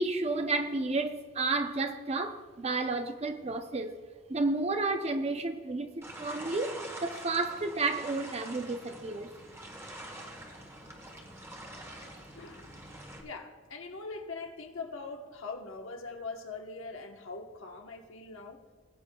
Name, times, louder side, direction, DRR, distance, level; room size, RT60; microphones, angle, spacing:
voice 1, 0.0-3.9 4.3-9.3, right 3 dB, 30° right, 7 dB, 0.5 m, -31 dB
sound 1, 6.0-13.2, right 1 dB, 15° right, 1.1 m, -45 dB
voice 2, 12.4-12.8 13.2-18.6, left 4 dB, 70° left, 3 dB, 1.1 m, -42 dB
19.5 x 8.1 x 2.3 m, 1.5 s
head